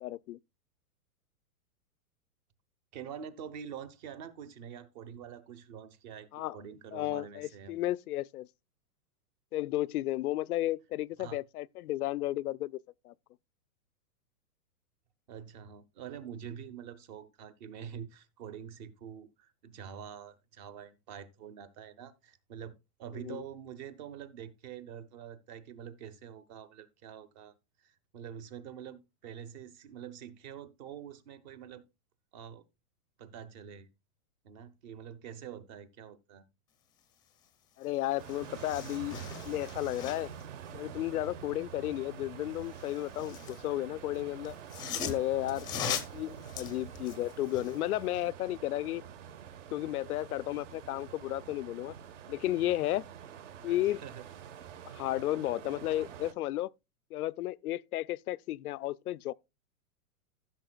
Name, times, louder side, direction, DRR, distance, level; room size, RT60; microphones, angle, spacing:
voice 1, 0.0-0.4 6.3-6.6 6.9-8.5 9.5-12.8 13.0-13.1 23.1-23.4 37.8-39.2 39.4-40.3 40.7-44.5 45.0-49.0 49.7-51.9 52.3-53.0 53.6-54.0 54.8-56.7 57.1-59.3, left 15 dB, 75° left, 0.6 m, -33 dB
voice 2, 2.9-7.8 11.2-11.4 15.3-31.8 32.3-32.6 33.2-33.9 34.4-36.5 53.7-54.2, right 8 dB, 30° right, 0.8 m, -46 dB
sound 1, 37.8-37.9 38.2-40.4 42.6-43.6 44.4-47.8 48.2-48.3, left 7 dB, 10° left, 0.6 m, -40 dB
sound 2, 38.2-56.3, right 8 dB, 55° right, 1.3 m, -47 dB
15.5 x 6.7 x 2.3 m
hypercardioid pair, 160°, 45 cm